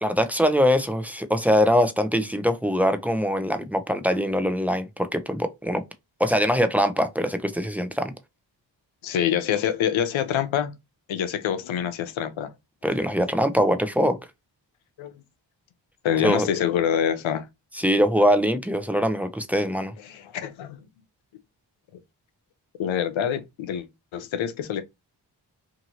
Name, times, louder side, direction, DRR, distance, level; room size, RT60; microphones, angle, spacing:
voice 1, 0.0-5.8 6.2-8.1 12.8-14.2 16.2-16.5 17.7-19.9, equal, 5° right, 0.6 m, -22 dB
voice 2, 9.0-10.7 11.1-12.5 15.0-15.1 16.0-17.5 20.0-20.8 22.8-23.9 24.1-24.8, left 9 dB, 90° left, 0.6 m, -26 dB
2.8 x 2.6 x 2.8 m
cardioid pair, 45°, 46 cm